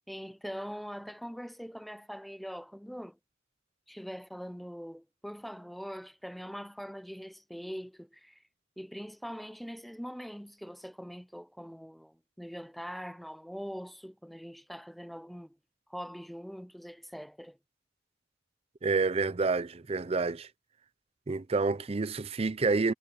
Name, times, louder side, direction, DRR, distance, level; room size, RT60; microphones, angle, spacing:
voice 1, 0.1-3.2 3.9-8.4 8.8-15.6 15.9-17.6, equal, ahead, 0.7 m, -42 dB
voice 2, 18.8-20.5 21.3-22.9, right 3 dB, 30° right, 0.5 m, -28 dB
head